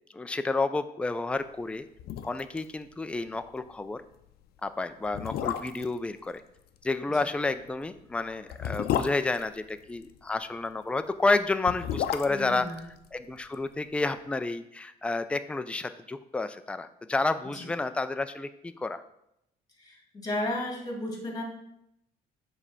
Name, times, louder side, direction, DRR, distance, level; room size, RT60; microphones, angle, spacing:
voice 1, 0.1-1.8 2.2-4.0 4.6-6.4 6.8-12.7 13.1-19.0, left 3 dB, 5° left, 10 dB, 0.3 m, -30 dB
sound 1, 1.6-1.7 2.0-2.7 2.9-3.0 3.4-3.6 4.3-4.4 5.0-6.0 7.5-10.2 11.4-13.7 13.9-14.0, left 10 dB, 70° left, 0.5 m, -33 dB
voice 2, 12.3-12.9 17.4-17.7 19.8-21.4, left 1 dB, 25° left, 0 dB, 2.0 m, -34 dB
7.2 x 3.3 x 5.5 m, 0.80 s
cardioid pair, 110°, 17 cm